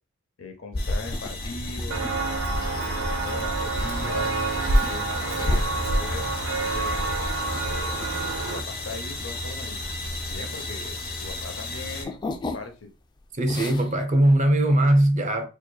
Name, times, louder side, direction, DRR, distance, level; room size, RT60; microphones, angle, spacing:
voice 1, 0.4-2.1 2.6-6.9 7.6-8.0 8.4-9.8 10.3-10.9 11.2-12.2 12.5-12.9, left 3 dB, 85° left, 0.8 m, -39 dB
sound 1, 0.7-11.1 11.4-12.9 13.2-14.0, left 1 dB, 20° left, 0.3 m, -33 dB
sound 2, 0.8-12.0, left 2 dB, 50° left, 0.8 m, -34 dB
Walk footsteps, 1.9-8.6, right 2 dB, 85° right, 0.7 m, -27 dB
voice 2, 13.4-15.5, right 1 dB, 35° right, 0.6 m, -20 dB
4.6 x 2.9 x 2.3 m
head